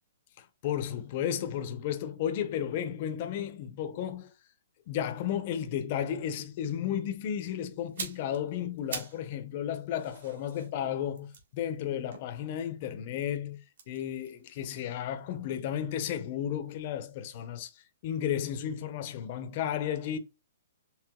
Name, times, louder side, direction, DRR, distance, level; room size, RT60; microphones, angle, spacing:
voice 1, 0.4-4.3 4.9-17.7 18.0-20.2, left 9 dB, 35° left, 0.6 m, -33 dB
sound 1, 7.8-9.3 9.6-12.9 13.7-15.7 16.0-16.2, right 5 dB, 65° right, 1.4 m, -45 dB
4.7 x 3.3 x 2.2 m
hypercardioid pair, 165°, 0 cm